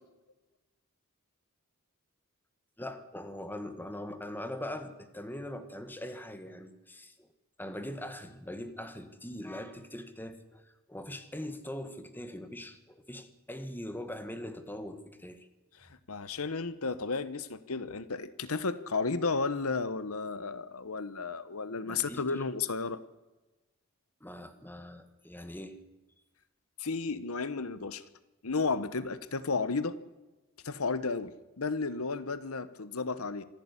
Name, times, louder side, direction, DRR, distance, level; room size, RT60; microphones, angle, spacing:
voice 1, 2.8-7.3 7.6-15.5 21.9-22.4 24.2-25.8, left 1 dB, 10° left, 9 dB, 1.8 m, -42 dB
voice 2, 15.8-23.0 26.8-28.0 28.4-30.0 30.6-31.3 31.6-33.4, left 4 dB, 70° left, 15 dB, 1.1 m, -33 dB
26.0 x 11.5 x 9.8 m, 1.1 s
head